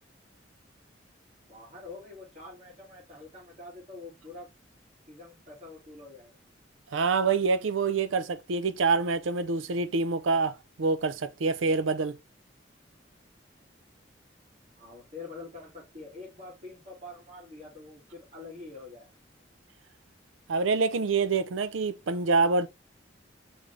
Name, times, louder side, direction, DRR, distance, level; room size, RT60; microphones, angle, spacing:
voice 1, 1.4-4.5 5.1-6.4 14.8-19.1, left 3 dB, 35° right, 2.0 m, -45 dB
voice 2, 6.9-12.2 20.5-22.7, right 4 dB, 90° right, 0.5 m, -26 dB
3.8 x 3.5 x 3.2 m
head